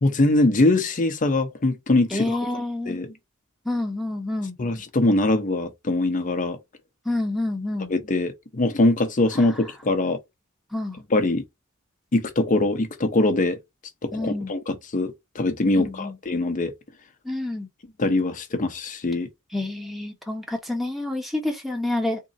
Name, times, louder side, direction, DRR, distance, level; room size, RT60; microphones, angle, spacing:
voice 1, 0.0-2.4 2.9-3.1 4.6-6.6 7.9-10.2 11.1-11.4 12.1-13.6 14.0-16.7 18.0-19.3, left 2 dB, 40° left, 0.7 m, -22 dB
voice 2, 2.1-3.0 3.7-4.6 7.1-7.9 9.4-9.5 10.7-11.0 14.1-14.5 15.8-16.1 17.2-17.7 19.5-22.2, left 2 dB, ahead, 0.8 m, -28 dB
3.7 x 2.0 x 4.0 m
head